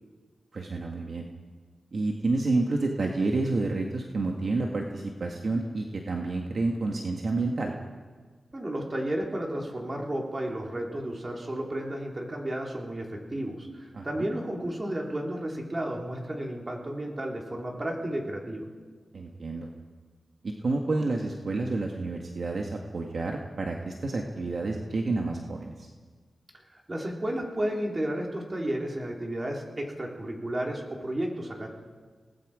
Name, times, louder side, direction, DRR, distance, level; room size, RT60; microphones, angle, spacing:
voice 1, 0.5-1.3 1.9-7.7 13.9-14.3 19.1-19.7 20.4-25.9, right 3 dB, 55° right, 1 dB, 1.8 m, -29 dB
voice 2, 8.5-18.7 26.7-31.7, right 1 dB, 25° right, 0 dB, 3.8 m, -32 dB
29.5 x 19.0 x 5.1 m, 1.5 s
wide cardioid pair, 110°, 0 cm